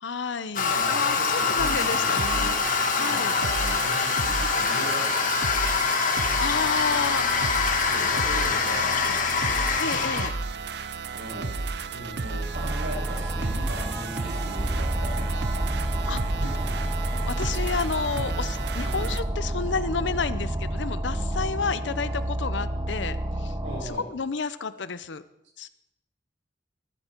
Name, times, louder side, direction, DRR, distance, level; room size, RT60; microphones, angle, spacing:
voice 1, 0.0-2.6 2.9-3.4 6.4-7.6 9.8-10.3 16.1-16.2 17.3-23.5 23.8-25.2 25.6-25.7, left 5 dB, 80° left, 14 dB, 0.7 m, -31 dB
voice 2, 0.5-2.6 2.9-6.4 7.8-10.4 11.1-16.8 18.8-19.1 23.6-24.1, right 1 dB, 80° right, -2 dB, 7.0 m, -39 dB
Toilet flush, 0.6-10.3, left 5 dB, 45° left, 1.5 m, -25 dB
sound 1, 1.6-19.2, right 4 dB, 65° right, 0.8 m, -33 dB
sound 2, 12.5-23.8, right 1 dB, 20° right, 0.7 m, -29 dB
22.5 x 11.5 x 4.5 m, 0.82 s
head